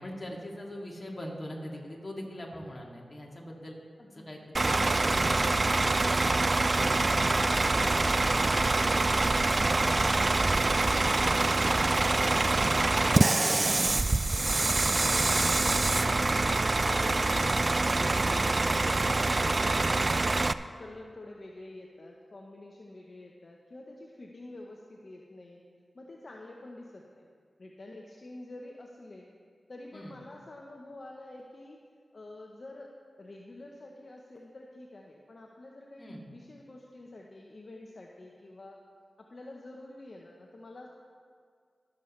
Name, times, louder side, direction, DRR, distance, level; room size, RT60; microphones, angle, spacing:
voice 1, 0.0-3.8 4.1-5.6 14.9-15.3 29.9-30.1 36.0-36.3, left 1 dB, 35° left, -2 dB, 2.4 m, -42 dB
voice 2, 4.0-4.6 7.5-16.1 16.9-17.5 17.8-25.6 25.9-27.3 27.6-29.3 29.7-31.8 32.1-32.9 33.2-38.8 39.2-40.9, left 2 dB, 55° left, 0 dB, 0.9 m, -48 dB
Bus / Idling, 4.5-20.5, right 2 dB, 45° right, 0.3 m, -25 dB
20.5 x 7.3 x 3.2 m, 2.1 s
cardioid pair, 40°, 0 cm